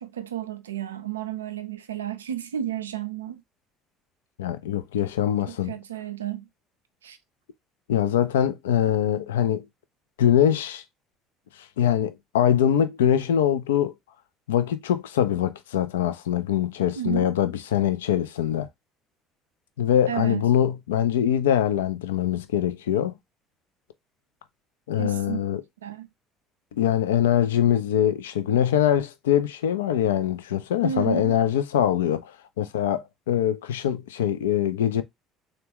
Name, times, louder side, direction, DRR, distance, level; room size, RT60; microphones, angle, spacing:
voice 1, 0.0-3.4 5.5-6.5 7.0-7.2 17.0-17.3 20.1-20.5 25.0-25.4 25.8-26.1 30.8-31.4, right 10 dB, 85° right, 0.4 m, -32 dB
voice 2, 4.4-5.7 7.9-9.7 10.2-10.8 11.8-13.9 14.5-18.7 19.8-23.1 24.9-25.6 26.7-35.0, left 10 dB, 80° left, 0.3 m, -23 dB
3.6 x 2.2 x 2.8 m
figure-of-eight pair, 60°, 0 cm